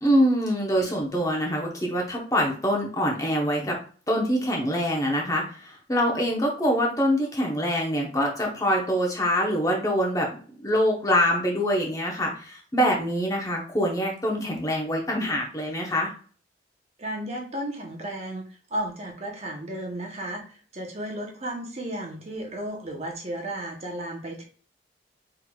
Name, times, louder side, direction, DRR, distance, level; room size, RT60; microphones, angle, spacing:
voice 1, 0.0-3.8 4.1-16.1, equal, 20° left, -1 dB, 0.9 m, -25 dB
voice 2, 17.0-24.5, right 1 dB, 35° right, 1 dB, 0.9 m, -34 dB
4.4 x 3.8 x 2.3 m, 0.41 s
head